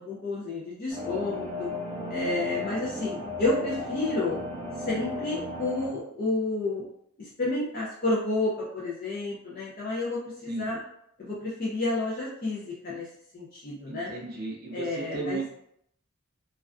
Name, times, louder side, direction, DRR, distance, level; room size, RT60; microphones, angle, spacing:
voice 1, 0.0-1.7 2.1-4.4 4.8-6.8 7.2-10.8 11.2-13.1 13.3-14.1 14.7-15.4, left 2 dB, 45° left, -6 dB, 0.5 m, -30 dB
sound 1, 0.9-5.9, left 2 dB, 15° left, 1.2 m, -35 dB
voice 2, 13.9-15.5, right 4 dB, 50° right, -2 dB, 0.5 m, -35 dB
2.3 x 2.3 x 2.3 m, 0.73 s
head